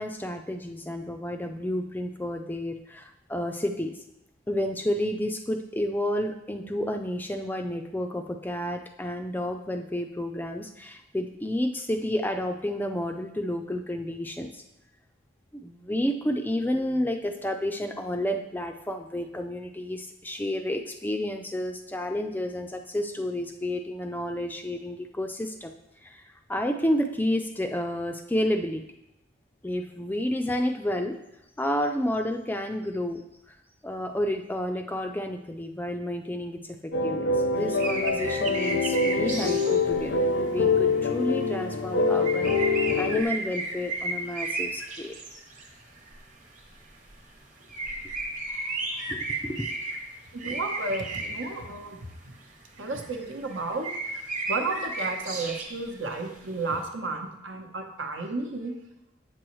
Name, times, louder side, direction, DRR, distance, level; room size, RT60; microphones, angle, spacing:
voice 1, 0.0-3.9 4.5-14.6 15.5-25.7 26.0-28.8 29.6-31.2 31.6-33.5 33.8-45.2 49.1-49.7, left 1 dB, 10° left, 5 dB, 0.3 m, -30 dB
sound 1, 36.9-43.2, left 3 dB, 80° left, 0.6 m, -25 dB
sound 2, 37.7-40.3 40.6-41.7 42.1-45.7 46.0-46.2 46.6-46.7 47.1-47.2 47.6-50.0 50.4-51.7 52.8-55.9 56.3-56.4, right 3 dB, 40° right, 1.1 m, -33 dB
voice 2, 50.3-52.3 52.8-54.0 54.5-58.7, right 3 dB, 80° right, 3 dB, 1.0 m, -33 dB
8.2 x 6.1 x 3.1 m, 0.87 s
head